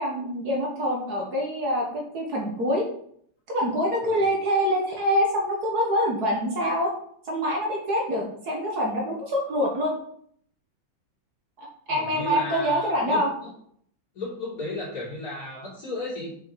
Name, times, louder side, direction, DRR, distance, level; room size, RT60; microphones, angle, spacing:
voice 1, 0.0-2.9 3.5-6.9 7.3-9.9 11.6-13.3, equal, 55° right, -1 dB, 1.8 m, -25 dB
voice 2, 11.9-13.5 14.1-16.4, left 2 dB, 45° left, -6 dB, 3.9 m, -34 dB
6.7 x 6.2 x 3.9 m, 0.65 s
omnidirectional pair, 2.1 m